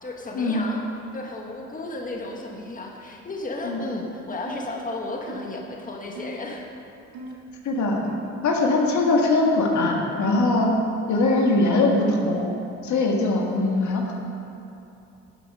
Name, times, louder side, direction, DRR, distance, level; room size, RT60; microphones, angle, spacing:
voice 1, 0.0-0.8 1.1-6.6 13.5-13.9, left 2 dB, 25° left, 0 dB, 1.5 m, -34 dB
sound 1, 4.4-4.7 5.3-5.5 6.1-6.4 7.1-7.4 8.0-8.3 8.9-9.1 9.7-10.0 10.6-10.9, right 1 dB, 90° right, 2.0 m, -38 dB
voice 2, 7.6-8.0 8.4-10.7 11.1-12.5 12.8-14.1, left 2 dB, 70° left, 0 dB, 1.7 m, -21 dB
12.0 x 7.6 x 5.5 m, 2.7 s
cardioid pair, 90°, 30 cm